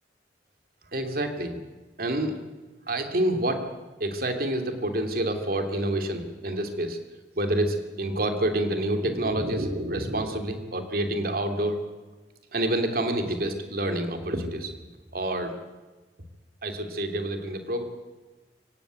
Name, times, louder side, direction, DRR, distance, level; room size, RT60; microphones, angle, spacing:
voice 1, 0.9-1.6 2.0-2.4 2.9-3.6 4.0-7.0 7.4-11.8 12.5-14.7 15.1-15.5 16.6-17.9, right 1 dB, 55° right, 6 dB, 2.9 m, -28 dB
25.0 x 16.5 x 9.4 m, 1.2 s
head